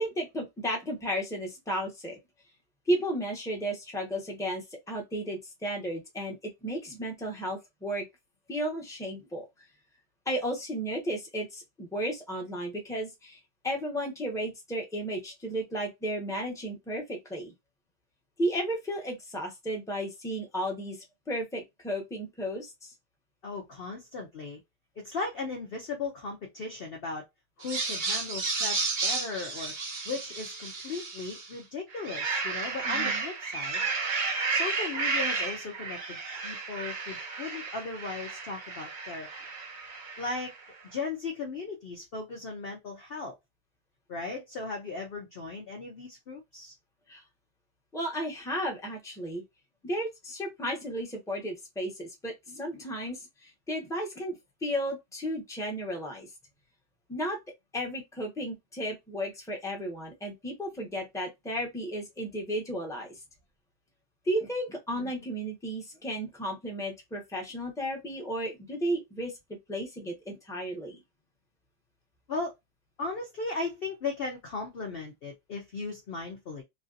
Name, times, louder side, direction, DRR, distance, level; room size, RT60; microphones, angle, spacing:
voice 1, 0.0-2.2 2.9-8.1 8.5-9.5 10.3-13.4 13.6-17.5 18.4-21.0 21.3-22.9 32.8-33.2 47.1-47.2 47.9-49.4 49.8-56.3 57.1-57.4 57.7-63.1 64.3-69.3 69.7-71.0, equal, 5° left, 0.7 m, -33 dB
voice 2, 23.4-24.6 25.0-27.2 27.6-33.9 34.5-39.3 40.2-40.5 40.8-43.3 44.1-46.7 64.9-65.3 72.3-72.5 73.0-76.6, left 3 dB, 65° left, 0.5 m, -37 dB
sound 1, 27.6-31.5 31.9-40.6, right 4 dB, 45° right, 0.6 m, -32 dB
3.2 x 2.7 x 2.5 m
omnidirectional pair, 1.8 m